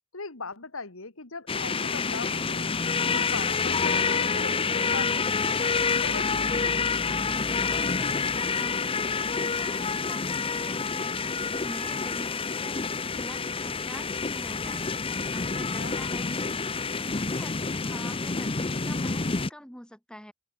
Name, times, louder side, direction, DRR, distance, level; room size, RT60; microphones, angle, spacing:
voice 1, 0.1-2.8 3.1-6.5 15.8-16.0, left 4 dB, 90° left, 2.6 m, -39 dB
sound 1, 1.5-19.5, left 4 dB, 25° left, 0.8 m, -28 dB
voice 2, 7.1-20.3, equal, 5° left, 3.3 m, -46 dB
head